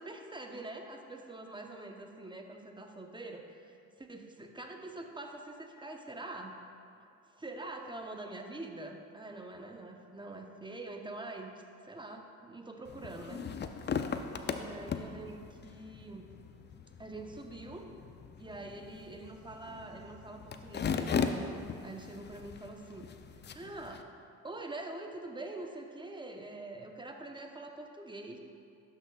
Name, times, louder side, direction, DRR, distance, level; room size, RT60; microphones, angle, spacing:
voice 1, 0.0-6.5 7.4-13.4 14.5-16.3 17.0-17.9 18.4-21.4 21.8-23.1 23.5-24.0 24.4-28.4, right 2 dB, 15° right, 3 dB, 0.9 m, -45 dB
sound 1, 12.9-24.0, left 6 dB, 30° left, 0.5 m, -38 dB
12.0 x 5.9 x 2.4 m, 2.5 s
supercardioid pair, 60°, 36 cm